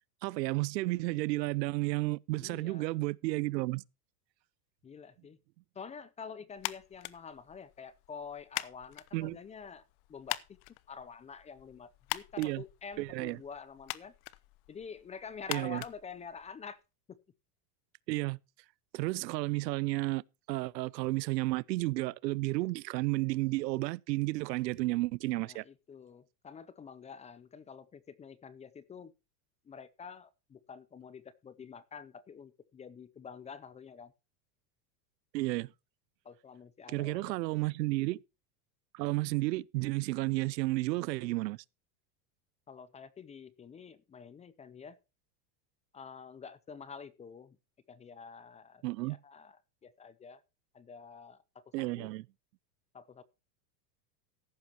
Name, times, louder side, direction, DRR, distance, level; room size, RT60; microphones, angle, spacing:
voice 1, 0.2-3.8 9.1-9.4 12.4-12.6 13.0-13.4 15.5-15.8 18.1-18.4 18.9-20.2 20.5-25.6 35.3-35.7 36.9-38.2 38.9-41.6 48.8-49.2 51.7-52.2, right 21 dB, 85° right, 0.7 m, -32 dB
voice 2, 2.4-2.9 4.8-5.4 5.7-10.6 10.9-14.1 14.7-16.8 17.1-17.2 25.4-29.1 29.6-34.1 36.2-37.4 37.6-37.7 42.7-45.0 45.9-47.6 47.9-50.4 50.7-52.1 52.9-53.2, left 6 dB, 15° left, 0.5 m, -48 dB
sound 1, 6.6-16.8, left 20 dB, 50° left, 0.9 m, -44 dB
14.5 x 11.5 x 2.9 m
supercardioid pair, 130°, 49 cm